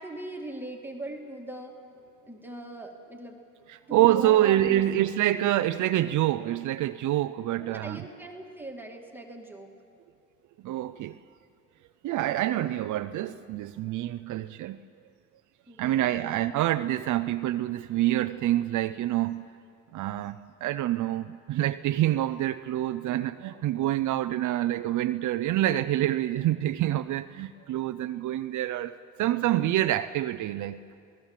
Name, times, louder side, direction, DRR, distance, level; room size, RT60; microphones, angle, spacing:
voice 1, 0.0-1.8 2.3-3.4 3.9-4.9 7.6-9.7 15.7-16.4, right 1 dB, 5° right, 1 dB, 2.4 m, -40 dB
voice 2, 3.7-8.0 10.6-11.2 12.0-14.8 15.8-19.5 19.9-31.0, right 13 dB, 75° right, 9 dB, 0.6 m, -26 dB
27.5 x 18.5 x 7.4 m, 2.4 s
cardioid pair, 90°, 30 cm